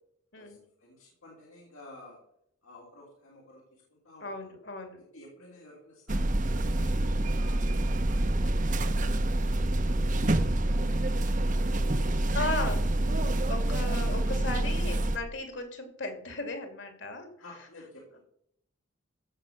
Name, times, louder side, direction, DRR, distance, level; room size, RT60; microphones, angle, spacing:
voice 1, 0.3-2.2 2.6-4.5 5.1-6.9 7.3-11.3 17.4-18.2, left 1 dB, 85° left, -4 dB, 3.3 m, -53 dB
voice 2, 4.2-5.0 12.3-12.9 13.1-13.2 13.5-17.3, left 2 dB, 60° left, 6 dB, 2.4 m, -36 dB
sound 1, 6.1-15.2, right 1 dB, 40° right, 0.8 m, -27 dB
15.5 x 6.7 x 5.9 m, 0.73 s
head